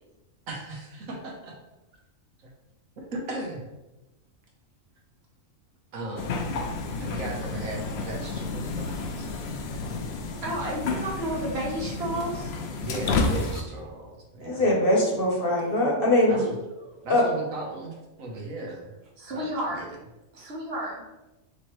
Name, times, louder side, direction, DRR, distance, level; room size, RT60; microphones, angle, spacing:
voice 1, 0.5-1.5 2.4-2.5 3.0-3.6 5.9-6.3 7.0-9.3 12.8-14.7 16.3-16.4 17.0-18.9 19.3-19.9 20.4-20.5, right 2 dB, 80° right, -1 dB, 1.3 m, -37 dB
sound 1, 6.2-13.6, left 3 dB, 65° left, 0.7 m, -31 dB
voice 2, 10.4-12.5 16.3-16.5 16.8-17.0 19.2-19.8 20.3-21.0, right 1 dB, 55° right, -2 dB, 1.2 m, -32 dB
voice 3, 14.4-16.4 17.1-17.2, left 1 dB, 45° left, -2 dB, 1.1 m, -22 dB
5.5 x 3.1 x 3.0 m, 1.0 s
omnidirectional pair, 1.4 m